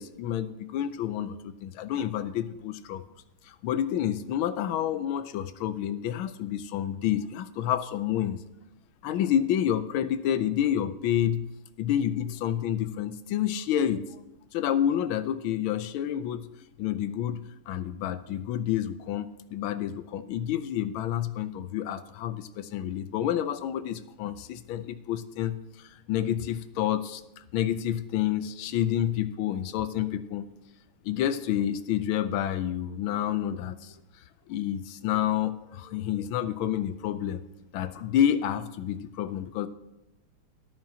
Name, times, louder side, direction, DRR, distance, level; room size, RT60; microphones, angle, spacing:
voice 1, 0.0-3.0 3.5-8.4 9.0-11.5 11.8-14.1 14.5-16.5 16.8-27.2 27.5-30.5 31.0-33.9 34.5-37.4 37.7-39.7, left 10 dB, 75° left, 12 dB, 1.4 m, -29 dB
13.5 x 12.0 x 2.8 m, 0.90 s
omnidirectional pair, 2.4 m